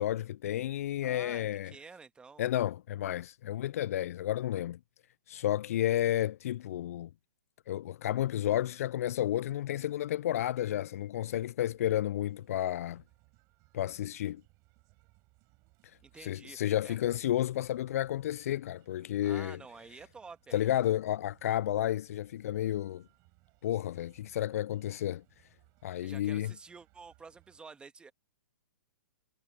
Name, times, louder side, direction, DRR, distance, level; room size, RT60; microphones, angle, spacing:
voice 1, 0.0-1.7 2.4-4.8 5.3-7.1 7.7-13.0 13.7-14.4 16.2-19.6 20.5-23.0 23.6-25.2 25.8-26.5, left 12 dB, 55° left, 0.3 m, -31 dB
voice 2, 1.0-2.5 16.0-16.6 16.8-17.0 19.2-20.9 26.0-28.1, right 5 dB, 10° right, 1.8 m, -50 dB
sound 1, 11.6-27.6, right 27 dB, 35° right, 7.2 m, -66 dB
hypercardioid pair, 125°, 9 cm